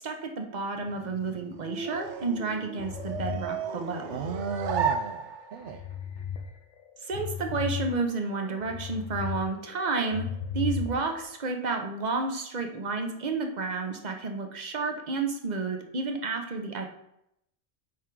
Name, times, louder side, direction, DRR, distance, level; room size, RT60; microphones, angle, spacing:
voice 1, 0.0-4.2 7.0-10.2 10.5-16.8, right 4 dB, 40° right, 4 dB, 0.9 m, -31 dB
sound 1, 0.8-5.8, right 7 dB, 85° right, 1.0 m, -34 dB
sound 2, 2.8-4.9 5.3-6.4 6.8-9.4 9.7-11.2, left 8 dB, 75° left, 1.3 m, -36 dB
voice 2, 4.1-5.8, right 6 dB, 60° right, 5 dB, 0.6 m, -34 dB
8.3 x 3.7 x 4.7 m, 0.79 s
omnidirectional pair, 1.2 m